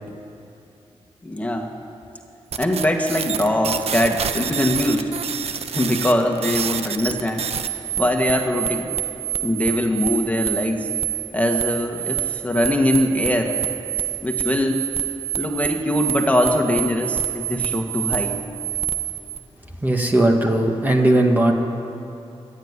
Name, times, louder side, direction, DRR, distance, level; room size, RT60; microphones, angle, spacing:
voice 1, 1.2-1.7 2.6-5.1 5.7-7.5 8.0-9.0 9.4-10.9 11.3-13.6 14.2-14.8 15.3-18.4, left 1 dB, 15° left, 2 dB, 1.8 m, -22 dB
sound 1, 2.5-19.4, right 10 dB, 70° right, 1.0 m, -27 dB
voice 2, 19.8-21.5, right 1 dB, 15° right, 1 dB, 1.7 m, -17 dB
25.5 x 11.5 x 9.7 m, 2.7 s
wide cardioid pair, 140°, 11 cm